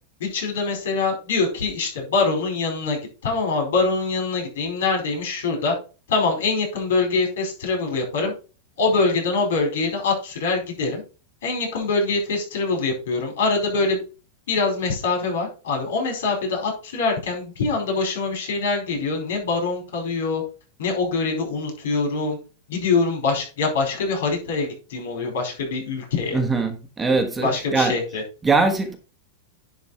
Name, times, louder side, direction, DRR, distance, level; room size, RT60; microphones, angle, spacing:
voice 1, 0.2-5.7 6.1-8.3 8.8-11.0 11.4-14.0 14.5-20.4 20.8-22.4 22.7-26.4 27.4-28.2, left 4 dB, 80° left, 4.8 m, -24 dB
voice 2, 26.3-27.9 28.4-29.0, right 3 dB, 10° right, 1.2 m, -21 dB
10.5 x 4.4 x 4.4 m
supercardioid pair, 145°, 0 cm